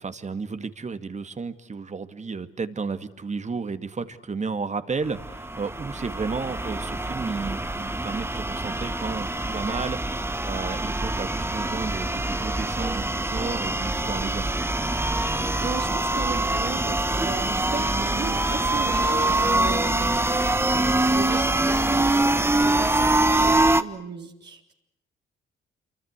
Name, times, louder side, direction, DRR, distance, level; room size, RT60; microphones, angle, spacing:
voice 1, 0.0-14.5 20.7-21.0, right 4 dB, 35° right, 11 dB, 2.2 m, -33 dB
sound 1, 5.1-23.8, right 2 dB, 10° right, 1.3 m, -24 dB
voice 2, 14.9-15.3 15.6-20.2 21.1-24.7, right 6 dB, 55° right, 1 dB, 3.7 m, -36 dB
27.5 x 24.5 x 8.3 m, 0.80 s
supercardioid pair, 60°, 21 cm